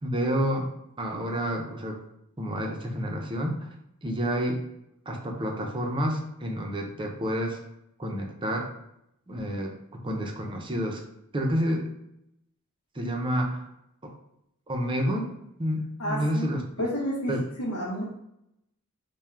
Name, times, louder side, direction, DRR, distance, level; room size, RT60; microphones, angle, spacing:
voice 1, 0.0-0.7 1.0-2.0 2.4-3.7 4.0-4.6 5.1-7.6 8.0-8.7 9.3-11.0 11.3-11.9 12.9-13.6 14.0-14.1 14.7-15.3 15.6-16.6 17.3-17.4, equal, 25° right, 2 dB, 0.6 m, -29 dB
voice 2, 16.0-16.5 16.8-18.0, equal, 80° left, -4 dB, 0.9 m, -30 dB
3.5 x 2.2 x 4.3 m, 0.80 s
head